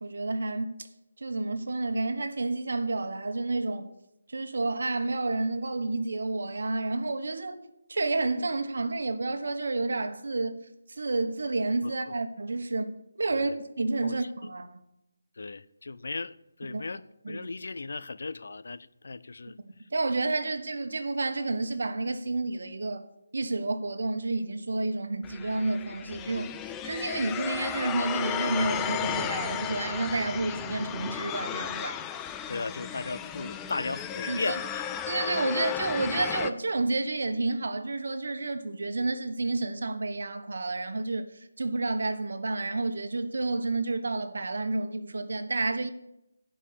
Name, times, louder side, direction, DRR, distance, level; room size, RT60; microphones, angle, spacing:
voice 1, 0.0-0.9 1.2-3.9 4.3-7.6 7.9-10.6 10.9-13.5 13.8-14.8 16.7-16.8 17.2-17.5 19.9-23.1 23.3-26.6 26.8-32.0 34.3-34.6 35.1-45.9, right 2 dB, 65° right, 1.3 m, -30 dB
voice 2, 11.8-12.1 13.3-13.5 14.0-14.2 14.4-14.5 15.4-16.3 16.6-17.0 17.3-19.6 32.5-34.9, left 3 dB, 65° left, 0.5 m, -36 dB
sound 1, 25.2-36.5, left 9 dB, 10° left, 0.3 m, -34 dB
11.0 x 5.4 x 8.6 m
hypercardioid pair, 170°, 0 cm